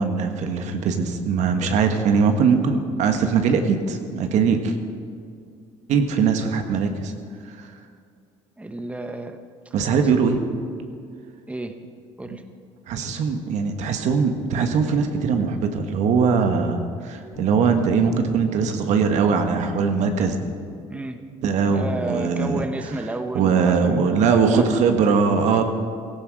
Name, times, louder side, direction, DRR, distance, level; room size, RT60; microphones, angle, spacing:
voice 1, 0.0-4.7 5.9-7.1 7.5-7.7 9.7-10.4 12.3-12.4 12.9-20.4 21.4-22.6 23.3-25.6, right 5 dB, 70° right, 6 dB, 1.5 m, -21 dB
voice 2, 8.6-9.4 9.6-10.1 11.5-11.7 12.2-12.4 20.9-21.2 21.7-24.7, right 2 dB, 10° right, 7 dB, 1.1 m, -32 dB
Bass guitar, 17.3-23.6, right 2 dB, 40° left, 5.1 m, -44 dB
17.0 x 14.5 x 4.9 m, 2.3 s
supercardioid pair, 90°, 13 cm